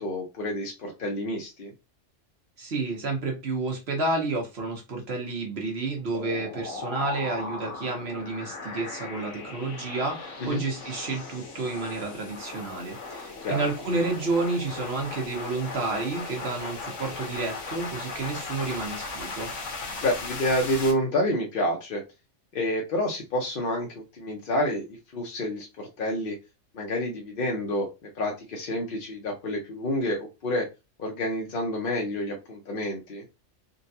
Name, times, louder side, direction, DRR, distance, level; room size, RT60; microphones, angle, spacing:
voice 1, 0.0-1.7 10.4-10.6 13.4-13.6 20.0-22.0 22.5-26.4 26.7-30.7 31.0-33.2, left 1 dB, 55° left, 0 dB, 0.7 m, -29 dB
voice 2, 2.6-19.5, right 3 dB, 60° right, 1 dB, 1.2 m, -30 dB
sound 1, 6.1-20.9, left 3 dB, 75° left, 1.3 m, -37 dB
3.8 x 2.1 x 2.7 m, 0.26 s
omnidirectional pair, 1.3 m